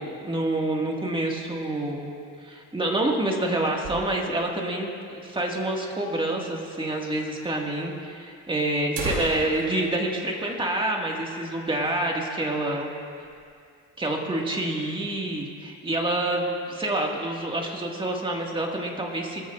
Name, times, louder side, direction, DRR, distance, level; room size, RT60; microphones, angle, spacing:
voice 1, 0.0-2.1 2.4-12.9 14.0-19.5, right 1 dB, 15° right, 0 dB, 2.1 m, -27 dB
sound 1, 3.2-4.6 4.9-5.0 5.2-5.3 6.0-6.1 7.0-7.1 7.4-7.5 8.3-8.4 8.7-11.3 11.6-11.8 12.2-12.4 12.9-13.4, right 4 dB, 85° right, 2.3 m, -37 dB
21.5 x 14.0 x 2.6 m, 2.4 s
cardioid pair, 105°, 32 cm